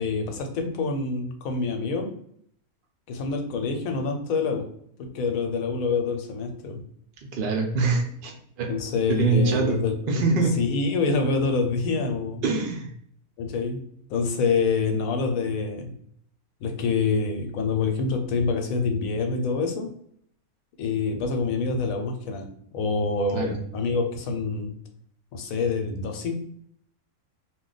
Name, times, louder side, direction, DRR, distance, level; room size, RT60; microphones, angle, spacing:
voice 1, 0.0-2.1 3.1-4.7 5.0-6.8 8.7-12.4 13.4-13.8 14.1-15.9 16.6-19.9 20.8-22.5 22.7-24.7 25.3-26.3, left 4 dB, 75° left, 4 dB, 1.0 m, -26 dB
voice 2, 7.2-8.7 9.1-9.8 10.1-10.5 12.4-12.9 23.3-23.6, right 4 dB, 90° right, 1 dB, 0.4 m, -24 dB
2.5 x 2.2 x 3.8 m, 0.66 s
omnidirectional pair, 1.5 m